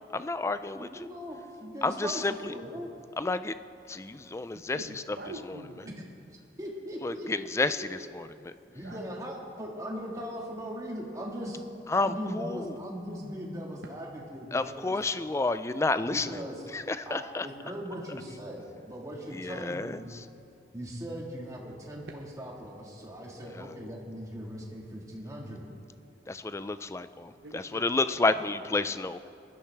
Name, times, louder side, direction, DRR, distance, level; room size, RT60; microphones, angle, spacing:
voice 1, 0.1-1.1 1.8-2.5 3.2-3.5 3.9-4.8 7.0-8.5 11.9-12.8 14.5-16.3 16.7-17.5 19.3-20.0 26.3-29.2, left 3 dB, 15° left, 13 dB, 0.3 m, -30 dB
voice 2, 0.7-2.9 6.6-8.1 8.7-11.6 11.9-15.0 16.0-16.6 17.0-20.1 20.7-25.7, equal, 20° right, -2 dB, 1.7 m, -39 dB
voice 3, 4.7-6.0 8.8-9.0 27.4-28.1 28.3-28.5, right 1 dB, 75° right, 1 dB, 0.8 m, -44 dB
20.0 x 11.5 x 3.4 m, 2.5 s
head